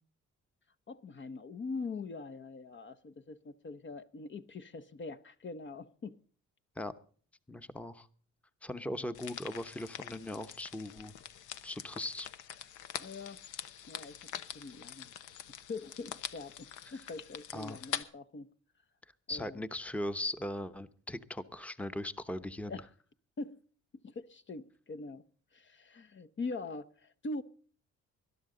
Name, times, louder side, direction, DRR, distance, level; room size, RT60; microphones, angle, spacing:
voice 1, 0.9-6.2 13.0-13.4 13.9-18.5 19.3-19.6 22.7-22.9 23.4-23.6 24.0-25.2 25.5-27.4, left 3 dB, 40° left, 0.9 m, -43 dB
voice 2, 7.5-8.1 8.6-11.1 11.6-12.3 17.5-17.8 19.3-22.8, left 1 dB, 5° left, 0.9 m, -39 dB
sound 1, 9.1-18.0, left 10 dB, 85° left, 1.0 m, -44 dB
20.5 x 12.0 x 3.9 m
cardioid pair, 90°, 30 cm